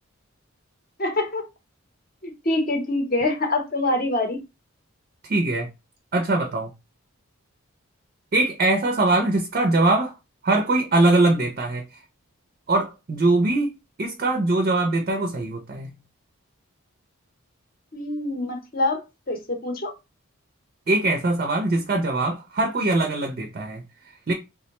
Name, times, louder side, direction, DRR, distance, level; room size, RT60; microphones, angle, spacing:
voice 1, 1.0-1.4 2.2-4.4 17.9-19.0 19.3-19.9, left 2 dB, 40° left, 0.7 m, -25 dB
voice 2, 5.3-5.7 6.1-6.7 8.3-10.1 10.4-11.8 12.7-13.7 14.0-15.9 20.9-23.8 24.3-24.4, right 2 dB, 40° right, 0.4 m, -22 dB
3.4 x 2.1 x 2.9 m
head